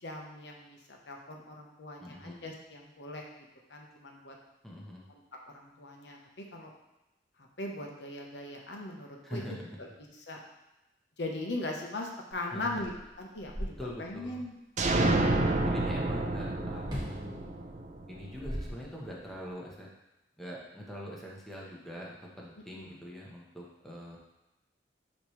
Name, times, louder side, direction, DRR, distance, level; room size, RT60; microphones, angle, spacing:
voice 1, 0.0-3.2 3.7-4.3 5.1-6.7 7.6-9.9 10.1-10.4 11.2-14.5 15.0-15.7 22.8-23.0, left 2 dB, 70° left, 0 dB, 1.0 m, -40 dB
voice 2, 2.0-2.4 4.6-5.0 9.2-9.8 12.5-12.8 13.8-14.4 15.6-17.4 18.1-19.9 20.4-24.2, equal, ahead, -4 dB, 1.1 m, -43 dB
sound 1, 12.3-12.4 12.7-14.2 16.8-17.3 18.1-19.3, equal, 25° right, 1.5 m, -39 dB
sound 2, 14.8-18.5, right 2 dB, 45° right, 0.5 m, -29 dB
9.2 x 3.2 x 3.2 m, 0.97 s
head